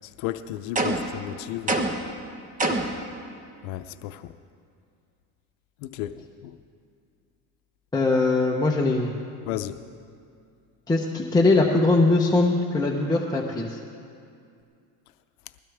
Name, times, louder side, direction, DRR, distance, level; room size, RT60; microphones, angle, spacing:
voice 1, 0.2-1.8 3.6-4.3 5.8-6.1 6.4-6.5 9.5-9.8, left 13 dB, 85° left, 10 dB, 0.7 m, -33 dB
sound 1, 0.8-1.2 1.7-2.1 2.6-3.0, right 2 dB, 20° right, 1.2 m, -25 dB
voice 2, 7.9-9.2 10.9-13.8, left 2 dB, 10° left, -2 dB, 0.9 m, -21 dB
21.0 x 16.0 x 3.5 m, 2.4 s
cardioid pair, 135°, 39 cm